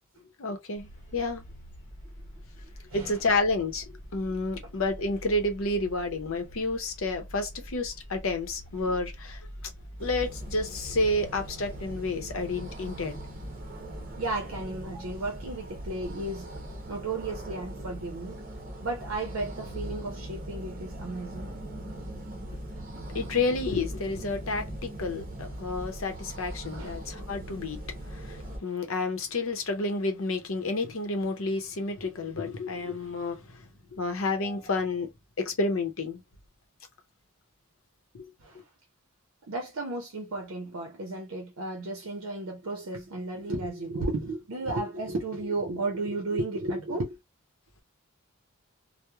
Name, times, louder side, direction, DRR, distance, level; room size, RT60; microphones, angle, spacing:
voice 1, 0.4-1.4 2.9-3.8 4.1-9.4 10.0-13.2 23.1-27.8 28.1-35.1 35.4-36.2 38.1-38.3, left 2 dB, 70° left, 0.7 m, -30 dB
sound 1, 0.8-16.7, equal, 35° left, 1.0 m, -46 dB
voice 2, 2.9-3.2 14.2-16.5 16.9-18.4 18.8-21.5 26.6-26.9 34.4-34.7 38.4-38.6 39.5-47.2, right 2 dB, 75° right, 0.6 m, -34 dB
sound 2, 10.0-28.6, right 1 dB, 40° right, 0.7 m, -40 dB
3.0 x 2.0 x 2.2 m
head